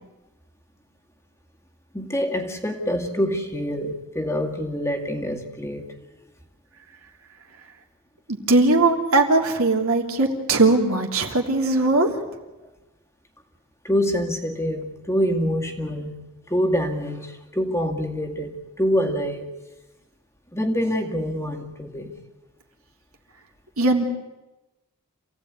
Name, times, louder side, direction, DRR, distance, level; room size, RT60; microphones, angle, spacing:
voice 1, 1.9-5.9 13.8-19.5 20.5-22.1, equal, 10° left, 4 dB, 2.1 m, -26 dB
voice 2, 8.3-12.2 23.8-24.0, right 2 dB, 65° right, 2 dB, 3.2 m, -19 dB
27.5 x 16.5 x 9.6 m, 1.1 s
head